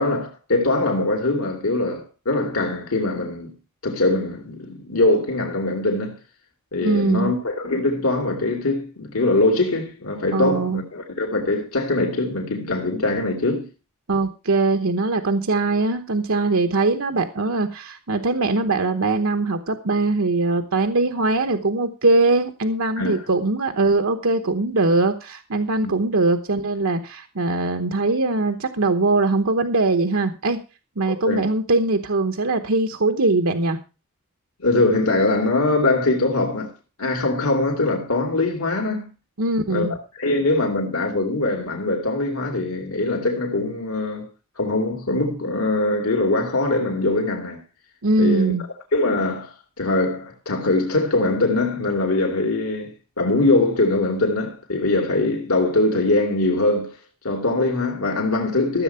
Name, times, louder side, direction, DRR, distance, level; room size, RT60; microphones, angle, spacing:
voice 1, 0.0-3.5 3.8-6.2 6.7-13.6 23.0-23.2 25.8-26.0 31.3-31.5 34.6-36.7 37.0-39.1 39.7-44.3 44.6-47.6 48.2-48.5 48.9-57.0 57.2-58.8, left 2 dB, 85° left, 2.6 m, -22 dB
voice 2, 6.8-7.3 10.3-10.8 14.1-30.6 31.0-33.8 39.4-39.9 48.0-48.6, right 3 dB, 70° right, 1.0 m, -21 dB
14.0 x 7.6 x 5.6 m
head